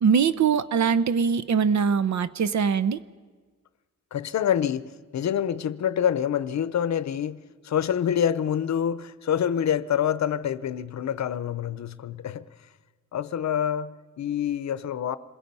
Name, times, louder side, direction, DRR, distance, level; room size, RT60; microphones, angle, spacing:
voice 1, 0.0-3.0, right 6 dB, 70° right, 0.7 m, -22 dB
voice 2, 4.1-12.5 13.1-15.2, left 9 dB, 65° left, 0.7 m, -26 dB
27.5 x 22.0 x 5.5 m
wide cardioid pair, 170°, 30 cm